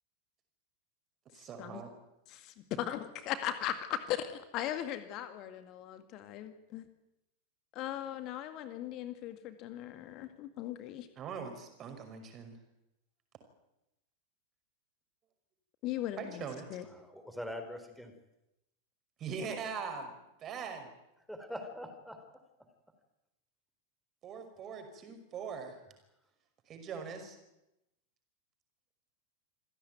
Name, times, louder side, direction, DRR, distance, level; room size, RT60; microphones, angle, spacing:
voice 1, 1.3-1.9 11.2-12.6 16.2-16.7 19.2-20.1 20.4-20.9 24.2-25.8 26.7-27.4, right 6 dB, 30° right, 6 dB, 5.6 m, -41 dB
voice 2, 2.3-6.9 7.7-11.1 15.8-16.8, left 12 dB, 40° left, 9 dB, 2.0 m, -38 dB
voice 3, 17.0-18.1 21.3-22.2, left 1 dB, ahead, 6 dB, 4.2 m, -43 dB
27.0 x 16.5 x 9.3 m, 0.90 s
figure-of-eight pair, 90°, 0 cm